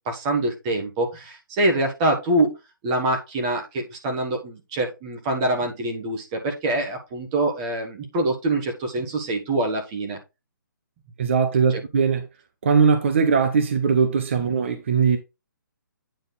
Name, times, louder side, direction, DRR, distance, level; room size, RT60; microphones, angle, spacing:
voice 1, 0.0-2.6 2.8-10.2 11.7-11.8, right 1 dB, 15° right, 1.3 m, -25 dB
voice 2, 11.2-12.3 12.6-15.2, right 5 dB, 35° right, 0.8 m, -20 dB
9.0 x 4.1 x 3.9 m
hypercardioid pair, 170°, 11 cm